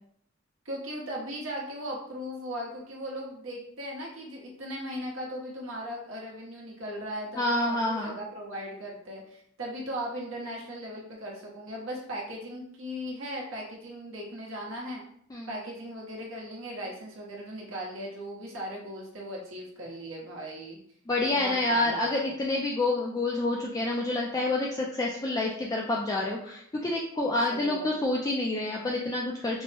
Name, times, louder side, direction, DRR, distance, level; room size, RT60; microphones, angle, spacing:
voice 1, 0.6-15.0 15.5-20.8 21.3-22.4 27.5-28.0, equal, 70° right, -2 dB, 1.0 m, -38 dB
voice 2, 7.4-8.2 15.3-15.5 21.1-29.6, left 2 dB, 20° left, -2 dB, 0.3 m, -28 dB
4.4 x 2.1 x 3.2 m, 0.67 s
head